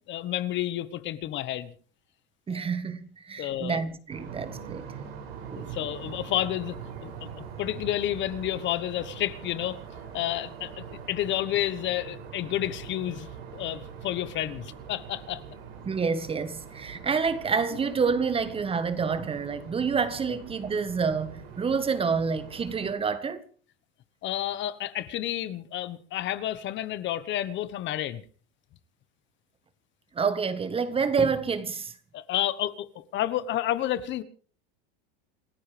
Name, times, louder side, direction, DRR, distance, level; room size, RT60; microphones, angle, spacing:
voice 1, 0.1-1.7 2.5-2.7 3.4-3.8 5.6-6.8 7.0-7.1 7.4-9.8 10.1-13.3 13.5-15.4 24.2-28.2 32.1-34.2, left 13 dB, 40° left, 1.3 m, -30 dB
voice 2, 2.5-4.9 5.5-5.8 15.8-23.4 30.1-31.9, right 5 dB, 20° right, 1.5 m, -28 dB
sound 1, 4.1-22.9, right 6 dB, 85° right, 7.1 m, -43 dB
28.0 x 14.0 x 3.4 m
supercardioid pair, 125°, 29 cm